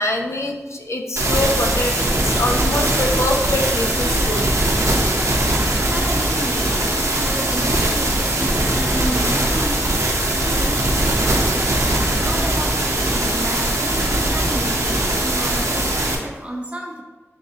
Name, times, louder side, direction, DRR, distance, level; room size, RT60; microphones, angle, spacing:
voice 1, 0.0-4.6, left 1 dB, 65° left, 3 dB, 0.4 m, -24 dB
sound 1, 1.2-16.2, right 1 dB, 85° right, 0.6 m, -20 dB
voice 2, 5.9-6.7 6.9-10.2 10.5-17.0, equal, 25° right, 0 dB, 0.7 m, -32 dB
4.1 x 3.6 x 2.7 m, 1.2 s
wide cardioid pair, 50°, 5 cm